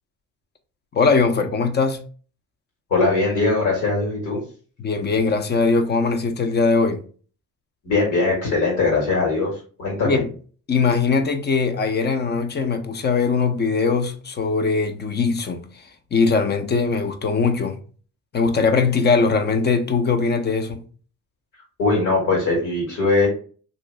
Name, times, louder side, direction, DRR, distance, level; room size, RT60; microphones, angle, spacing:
voice 1, 0.9-2.0 4.8-7.0 10.0-10.3 10.7-15.6 16.1-17.8 18.3-20.8, left 4 dB, 35° left, 0.6 m, -20 dB
voice 2, 2.9-4.4 7.8-10.2 21.8-23.3, left 3 dB, 80° left, 1.6 m, -21 dB
3.1 x 2.7 x 3.1 m
cardioid pair, 90°, 30 cm